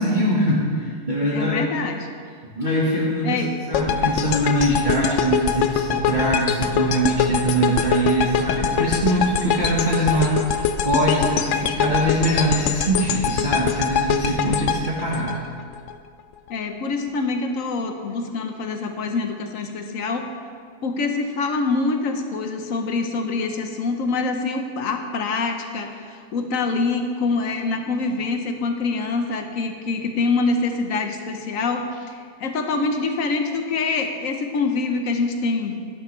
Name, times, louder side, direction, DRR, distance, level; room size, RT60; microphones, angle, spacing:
voice 1, 0.0-1.6 2.6-3.4 3.7-15.4, right 1 dB, 30° right, -6 dB, 1.3 m, -22 dB
voice 2, 1.3-2.1 3.2-3.5 16.5-20.3 20.8-35.8, left 3 dB, 60° left, 5 dB, 1.1 m, -25 dB
sound 1, 3.7-15.9, left 8 dB, 80° left, 0.6 m, -23 dB
11.5 x 11.0 x 3.2 m, 2.1 s
omnidirectional pair, 1.8 m